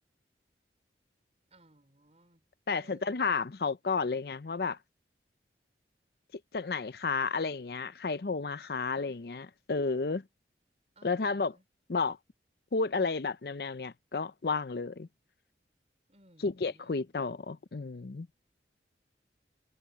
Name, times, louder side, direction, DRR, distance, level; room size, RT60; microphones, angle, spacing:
voice 1, 1.5-2.4 2.7-3.4 10.9-11.6 16.1-17.1, right 1 dB, 35° right, 4.9 m, -60 dB
voice 2, 2.7-4.8 6.5-10.2 11.0-11.5 11.9-12.2 12.7-15.1 16.4-18.3, left 4 dB, 60° left, 0.6 m, -32 dB
head